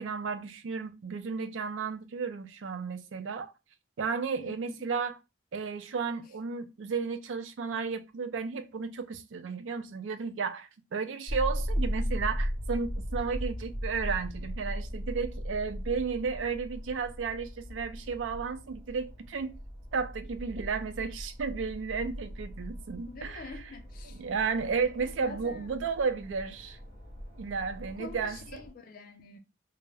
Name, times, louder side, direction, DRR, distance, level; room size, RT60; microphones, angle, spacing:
voice 1, 0.0-3.5 4.0-5.2 5.5-19.6 19.9-23.4 24.1-26.8 27.4-28.6, right 5 dB, 85° right, 0.4 m, -33 dB
voice 2, 4.4-4.8 23.1-24.2 25.0-25.7 28.0-29.4, left 3 dB, 50° left, 0.4 m, -47 dB
sound 1, 11.3-28.7, equal, 40° right, 1.1 m, -38 dB
2.2 x 2.0 x 3.2 m
head